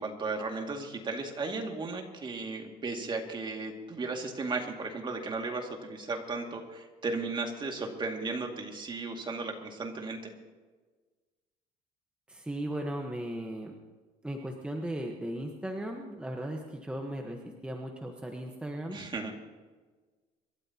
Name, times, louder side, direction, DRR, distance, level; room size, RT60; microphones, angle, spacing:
voice 1, 0.0-10.3 18.9-19.3, right 3 dB, 30° right, 2 dB, 2.3 m, -35 dB
voice 2, 12.3-13.7 14.2-19.0, right 1 dB, 5° right, 2 dB, 1.2 m, -37 dB
26.5 x 13.0 x 2.9 m, 1.4 s
cardioid pair, 120°, 16 cm